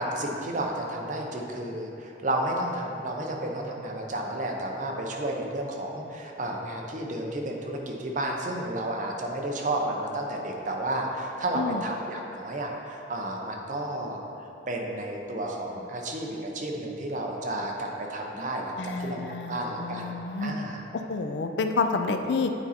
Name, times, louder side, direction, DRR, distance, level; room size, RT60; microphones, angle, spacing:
voice 1, 0.0-14.2 14.7-19.2 19.5-20.1 20.4-20.8, right 1 dB, 45° right, 0 dB, 0.8 m, -32 dB
voice 2, 18.8-20.5 21.1-22.5, left 4 dB, 80° left, 6 dB, 0.4 m, -29 dB
8.8 x 4.1 x 4.3 m, 3.0 s
head